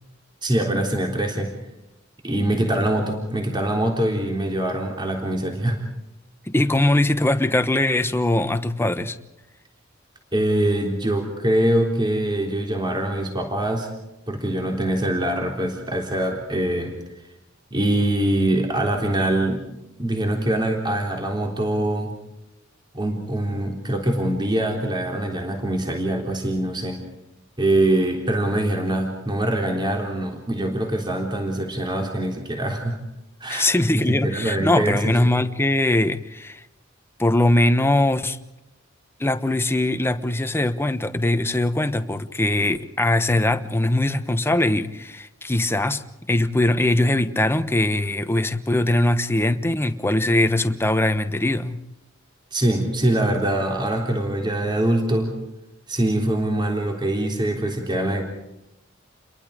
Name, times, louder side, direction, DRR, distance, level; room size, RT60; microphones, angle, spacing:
voice 1, 0.4-1.5 2.2-5.8 10.3-13.9 14.3-17.0 17.7-19.7 20.0-22.1 22.9-27.0 27.6-33.0 33.4-35.2 52.5-55.3 55.9-58.2, right 1 dB, 25° right, 3.6 m, -23 dB
voice 2, 6.5-9.2 33.5-36.6 37.2-38.4 39.2-51.8, left 1 dB, 10° left, 1.1 m, -21 dB
30.0 x 22.5 x 5.1 m
head